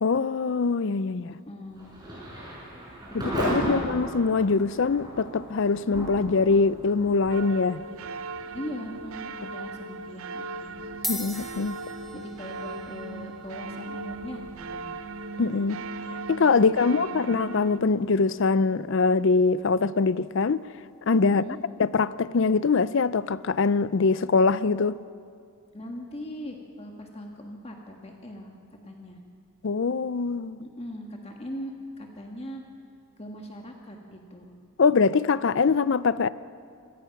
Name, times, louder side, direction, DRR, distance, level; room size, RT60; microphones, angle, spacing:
voice 1, 0.0-1.3 3.1-7.8 11.1-11.8 15.4-15.8 16.3-20.7 21.1-21.4 21.8-25.0 29.6-30.6 34.8-36.3, left 4 dB, 55° left, 0.5 m, -23 dB
voice 2, 1.2-1.9 8.5-10.7 12.1-14.9 16.6-17.2 21.2-21.6 25.7-28.5 28.8-29.2 30.6-32.6 33.2-34.5, equal, 30° left, 1.6 m, -40 dB
Thunder / Rain, 1.7-18.4, right 1 dB, 20° right, 6.7 m, -39 dB
sound 1, 7.3-17.8, right 3 dB, 70° right, 0.7 m, -38 dB
sound 2, 9.4-9.7 10.5-10.6 10.9-19.6, equal, ahead, 1.6 m, -43 dB
25.5 x 18.0 x 5.9 m
head